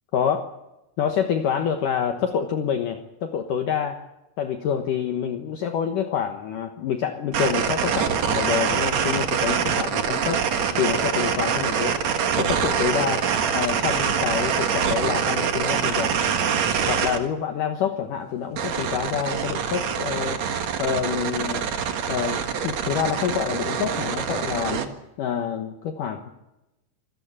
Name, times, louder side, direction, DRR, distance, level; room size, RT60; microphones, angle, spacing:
voice 1, 1.0-4.0 4.4-10.4 10.8-12.0 12.4-13.3 13.5-16.2 16.9-20.4 20.8-21.6 22.1-24.8 25.2-26.3, left 8 dB, 80° left, 5 dB, 1.8 m, -27 dB
sound 1, 7.3-17.2 18.6-24.9, right 7 dB, 70° right, 1.6 m, -25 dB
26.0 x 15.0 x 8.9 m, 0.94 s
omnidirectional pair, 5.8 m